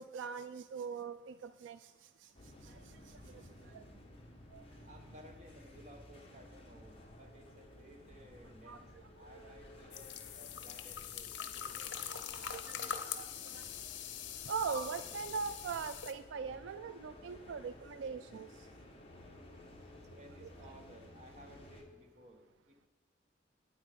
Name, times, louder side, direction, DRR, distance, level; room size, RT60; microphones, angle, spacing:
voice 1, 0.0-1.8 2.6-2.7 3.7-3.8 4.5-4.6 8.7-8.8 12.1-12.6 13.2-13.6 14.5-18.5 20.4-20.5, right 5 dB, 75° right, 12 dB, 0.3 m, -41 dB
sound 1, 2.3-21.8, left 1 dB, 30° left, 1.2 m, -55 dB
voice 2, 4.8-8.9 9.1-12.2 12.5-13.0 19.9-22.9, equal, 35° right, 3 dB, 1.2 m, -58 dB
sound 2, 9.9-16.1, left 9 dB, 75° left, 0.7 m, -43 dB
9.0 x 8.5 x 5.1 m, 1.3 s
head